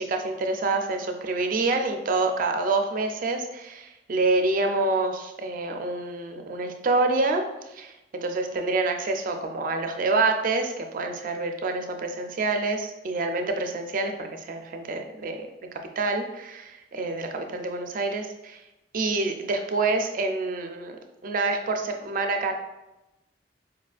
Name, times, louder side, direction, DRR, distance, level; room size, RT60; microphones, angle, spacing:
voice 1, 0.0-7.4 7.7-15.5 16.0-18.6 18.9-21.0 21.2-22.5, right 3 dB, 50° right, 5 dB, 0.4 m, -27 dB
4.7 x 2.4 x 2.4 m, 0.96 s
head